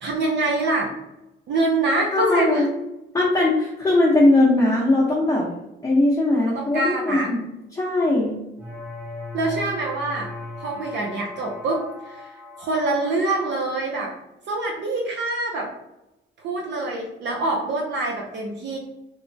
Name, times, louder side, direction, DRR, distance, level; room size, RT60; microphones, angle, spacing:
voice 1, 0.0-0.9 1.5-2.7 6.5-7.3 8.0-8.1 9.3-10.3 10.6-14.1 14.5-15.7 16.4-18.8, right 2 dB, 65° right, 0 dB, 0.5 m, -25 dB
voice 2, 2.1-2.6 3.1-5.5 5.8-7.4 7.7-8.3, left 2 dB, 15° left, -6 dB, 0.7 m, -19 dB
sound 1, 8.6-13.6, left 3 dB, 85° right, 1.4 m, -38 dB
3.1 x 2.1 x 2.6 m, 0.92 s
cardioid pair, 90°, 20 cm